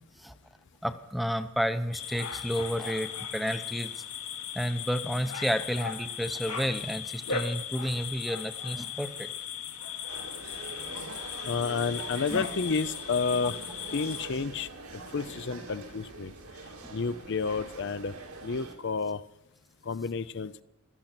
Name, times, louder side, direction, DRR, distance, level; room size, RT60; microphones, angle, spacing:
voice 1, 0.8-3.9 4.5-9.3 12.3-12.4 13.9-14.0 16.8-16.9, equal, ahead, 10 dB, 0.7 m, -31 dB
sound 1, 1.9-14.3, left 7 dB, 80° left, 1.9 m, -38 dB
sound 2, 10.1-18.8, right 3 dB, 75° right, 2.8 m, -44 dB
voice 2, 11.4-13.6 13.9-14.7 15.1-16.3 16.9-18.1 18.4-19.2 19.9-20.5, left 4 dB, 55° left, 13 dB, 0.5 m, -30 dB
17.0 x 13.5 x 6.0 m, 0.90 s
head